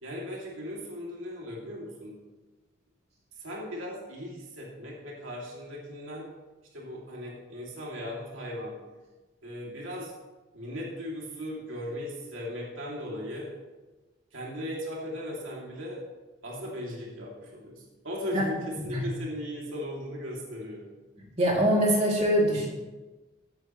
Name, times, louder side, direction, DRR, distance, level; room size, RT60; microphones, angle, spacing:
voice 1, 0.0-2.2 3.4-6.3 6.7-8.8 9.4-10.1 10.5-13.5 14.3-16.0 16.4-20.8, left 1 dB, 80° right, -3 dB, 2.8 m, -37 dB
voice 2, 21.4-22.7, equal, 30° right, -3 dB, 2.8 m, -23 dB
16.0 x 9.9 x 3.2 m, 1.2 s
head